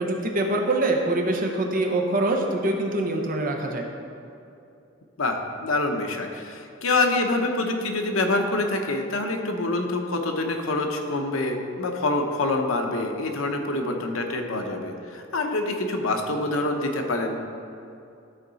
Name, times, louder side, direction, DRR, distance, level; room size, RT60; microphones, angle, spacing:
voice 1, 0.0-3.9, right 2 dB, 45° right, 2 dB, 0.9 m, -24 dB
voice 2, 5.2-17.4, left 2 dB, 80° left, 4 dB, 0.9 m, -26 dB
13.5 x 4.7 x 4.1 m, 2.7 s
head